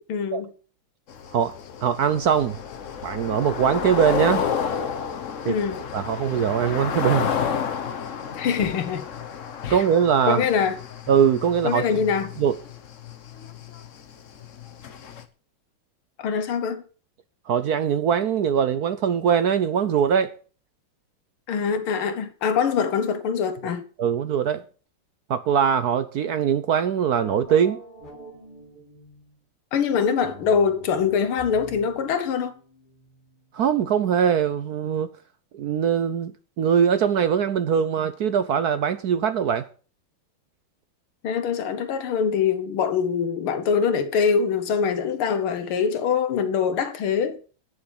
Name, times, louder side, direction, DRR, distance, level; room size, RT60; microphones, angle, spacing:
voice 1, 0.1-0.5 5.4-5.8 8.3-9.0 9.6-9.8 10.3-10.8 11.6-12.3 16.2-16.8 21.5-23.8 29.7-32.5 41.2-47.4, left 6 dB, 90° left, 2.0 m, -24 dB
sound 1, 1.1-15.2, left 7 dB, 50° left, 1.1 m, -31 dB
voice 2, 1.8-2.6 3.0-4.4 5.4-5.5 5.9-7.3 9.7-10.4 11.1-11.8 12.4-12.6 17.5-20.3 24.0-24.6 25.3-27.8 33.5-35.1 35.5-39.7, right 8 dB, 65° right, 1.0 m, -22 dB
sound 2, 27.1-29.4 30.2-33.5, equal, 20° left, 3.2 m, -44 dB
9.6 x 7.3 x 7.2 m
omnidirectional pair, 2.3 m